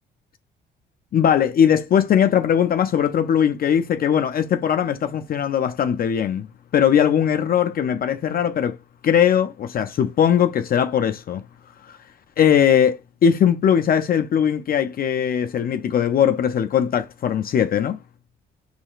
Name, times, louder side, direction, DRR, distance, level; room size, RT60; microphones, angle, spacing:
voice 1, 1.1-6.5 6.7-8.8 9.0-11.4 11.8-12.0 12.4-18.0, left 8 dB, 50° left, 0.4 m, -20 dB
4.7 x 3.2 x 2.4 m
cardioid pair, 90°, 20 cm